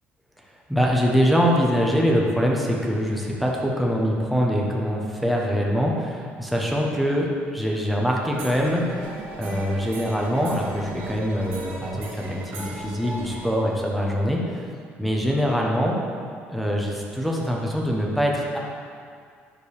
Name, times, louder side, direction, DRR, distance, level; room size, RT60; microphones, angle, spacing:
voice 1, 0.7-9.1 9.4-14.7 15.0-16.0 16.5-18.6, equal, ahead, -2 dB, 0.9 m, -23 dB
sound 1, 8.3-13.5, right 2 dB, 85° right, 2.0 m, -37 dB
11.0 x 6.7 x 3.3 m, 2.2 s
cardioid pair, 170°, 4 cm